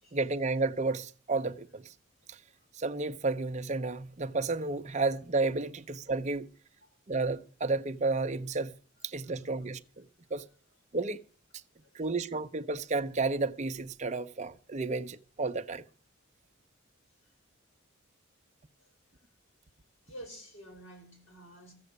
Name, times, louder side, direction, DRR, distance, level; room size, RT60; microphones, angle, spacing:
voice 1, 0.1-1.9 2.3-2.4 2.8-6.5 7.1-8.7 9.0-10.1 10.3-10.4 10.9-11.2 11.9-15.8, right 3 dB, 35° right, 0.7 m, -32 dB
voice 2, 20.0-21.7, equal, 70° left, 5.9 m, -50 dB
15.0 x 7.7 x 8.1 m
head